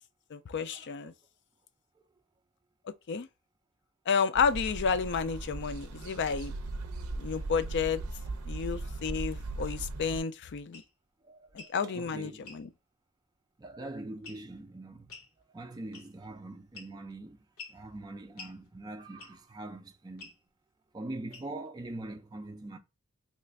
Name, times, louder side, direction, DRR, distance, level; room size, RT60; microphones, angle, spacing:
voice 1, 0.3-1.1 3.1-3.3 4.1-6.5 7.2-8.0 8.4-10.8 11.5-12.7, left 6 dB, 55° left, 0.4 m, -31 dB
sound 1, 4.3-10.2, right 2 dB, 75° right, 0.5 m, -38 dB
sound 2, 10.7-10.9 11.5-11.8 12.4-12.6 14.2-14.6 15.1-15.3 15.9-16.3 16.7-17.1 17.6-17.8 18.4-18.6 19.2-19.5 20.2-20.4 21.3-21.7, left 4 dB, 75° left, 1.1 m, -48 dB
voice 2, 11.2-12.5 13.6-15.2 15.5-17.4 17.7-20.3 20.9-22.8, right 2 dB, 20° right, 0.4 m, -43 dB
3.1 x 2.4 x 3.2 m
head